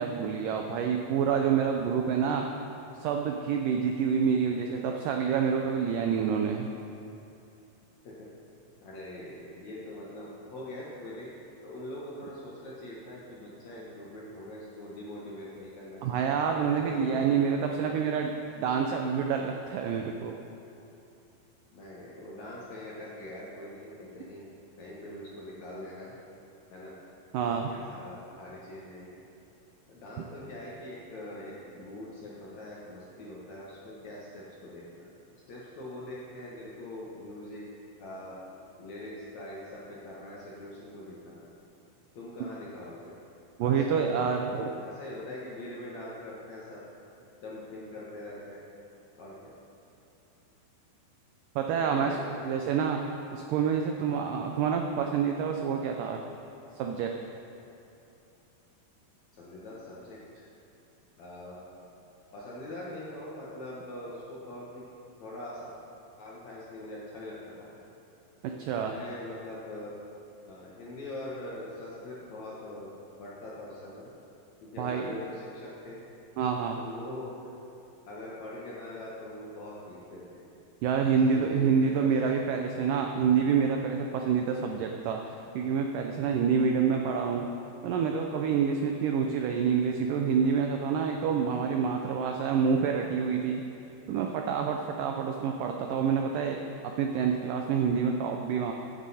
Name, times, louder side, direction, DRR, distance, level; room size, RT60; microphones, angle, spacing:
voice 1, 0.0-2.5 3.0-6.7 16.0-20.3 27.3-27.7 43.6-44.7 51.6-52.2 52.4-53.0 53.3-56.2 56.8-57.1 68.6-68.9 74.8-75.2 76.4-76.8 80.8-87.5 87.8-93.6 94.1-96.6 97.0-98.7, right 6 dB, 90° right, 3 dB, 1.9 m, -27 dB
voice 2, 8.8-11.3 11.6-16.3 16.8-17.4 17.8-18.1 21.7-24.5 24.8-26.1 26.7-26.9 27.6-29.2 29.9-35.1 35.5-37.6 38.0-38.4 38.8-41.5 42.1-43.1 43.6-44.5 44.8-46.8 47.4-48.6 49.2-49.5 51.8-52.4 59.3-60.5 61.2-61.6 62.3-64.9 65.2-65.7 66.2-67.7 68.8-70.0 70.5-72.9 73.2-74.1 74.6-76.0 76.5-77.3 78.1-80.4 81.1-82.4 83.2-83.4, left 1 dB, 60° left, -6 dB, 2.2 m, -43 dB
15.0 x 9.9 x 4.2 m, 2.8 s
omnidirectional pair, 4.6 m